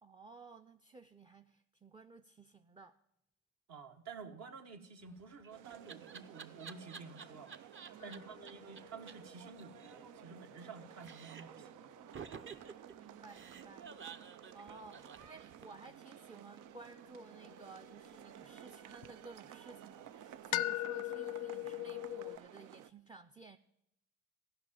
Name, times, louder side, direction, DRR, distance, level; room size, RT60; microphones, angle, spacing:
voice 1, 0.0-3.0 7.9-8.2 13.0-13.9 14.2-23.6, right 3 dB, 15° right, 6 dB, 0.4 m, -55 dB
voice 2, 3.7-11.9, right 5 dB, 60° right, 5 dB, 1.3 m, -51 dB
Laughter, 5.1-8.2 8.5-8.6 8.8-8.9 9.1-9.2 9.4-10.7 11.0-11.6 12.1-15.9, right 6 dB, 40° right, 0.8 m, -51 dB
sound 1, 5.5-22.9, right 11 dB, 85° right, 0.5 m, -54 dB
sound 2, 8.0-12.3 16.6-19.1 20.5-22.4, left 15 dB, 80° left, 0.5 m, -42 dB
14.5 x 5.6 x 8.4 m, 0.83 s
cardioid pair, 90°, 30 cm